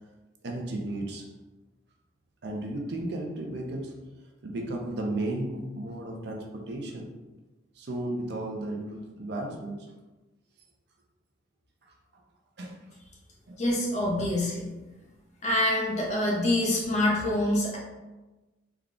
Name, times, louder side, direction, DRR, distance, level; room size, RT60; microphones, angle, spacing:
voice 1, 0.4-1.3 2.4-3.9 4.4-7.1 7.8-9.9 12.6-12.8 13.5-13.6, right 1 dB, 60° right, 1 dB, 0.5 m, -34 dB
voice 2, 13.6-14.6 15.4-17.8, left 1 dB, 40° left, -4 dB, 0.8 m, -26 dB
3.4 x 2.3 x 3.7 m, 1.1 s
head